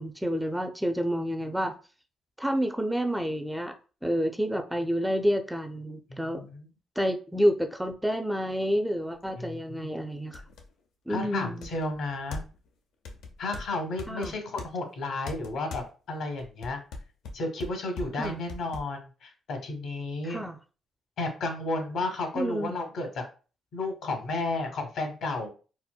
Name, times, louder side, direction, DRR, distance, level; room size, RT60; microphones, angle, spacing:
voice 1, 0.0-1.8 2.4-3.7 4.0-6.4 7.0-10.4 11.1-11.7 14.1-14.3 18.2-18.4 20.2-20.6 22.3-22.7, equal, 5° right, 0.4 m, -29 dB
voice 2, 6.1-6.7 9.4-10.0 11.1-12.4 13.4-16.8 17.3-20.4 21.2-23.2 23.7-25.5, left 2 dB, 70° left, 0.8 m, -33 dB
sound 1, 9.2-9.3 9.8-9.9 10.3-10.7 11.6-12.7 13.0-14.7 15.3-15.9 16.4-18.9, left 3 dB, 90° left, 0.5 m, -40 dB
4.1 x 2.1 x 2.2 m
cardioid pair, 90°, 0 cm